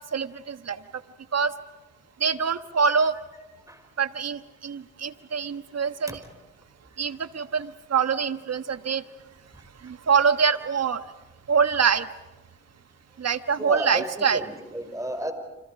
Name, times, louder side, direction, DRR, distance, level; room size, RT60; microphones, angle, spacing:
voice 1, 0.1-0.8 1.3-1.5 2.2-3.1 4.0-6.2 7.0-9.0 9.8-11.0 11.5-12.0 13.2-14.4, right 6 dB, 55° right, 11 dB, 1.3 m, -24 dB
voice 2, 13.6-15.3, right 1 dB, 10° right, 7 dB, 5.5 m, -32 dB
30.0 x 26.0 x 5.0 m, 1.1 s
supercardioid pair, 45°, 30 cm